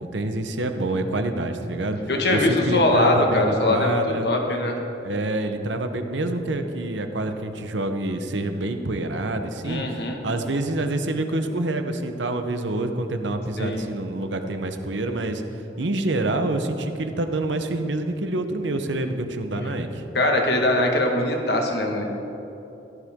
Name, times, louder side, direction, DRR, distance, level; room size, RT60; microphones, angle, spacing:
voice 1, 0.0-2.0 2.3-4.3 5.0-15.4 15.8-20.1, right 2 dB, 80° right, 7 dB, 0.9 m, -27 dB
voice 2, 2.1-4.8 9.6-10.2 13.6-13.8 20.1-22.1, left 1 dB, 60° left, 1 dB, 1.6 m, -22 dB
16.0 x 11.5 x 3.7 m, 3.0 s
head